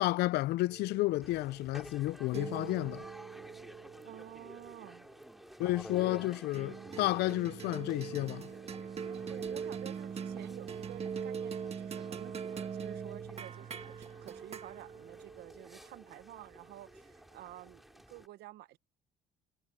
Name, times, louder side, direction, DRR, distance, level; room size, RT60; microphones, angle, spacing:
voice 1, 0.0-3.0 5.6-8.5, left 18 dB, 75° left, 0.5 m, -31 dB
sound 1, 0.7-5.4 6.5-17.0, right 7 dB, 40° right, 1.7 m, -43 dB
sound 2, 1.2-18.3, equal, ahead, 4.1 m, -52 dB
voice 2, 4.0-5.1 9.3-18.8, right 15 dB, 75° right, 0.9 m, -51 dB
cardioid pair, 110°, 17 cm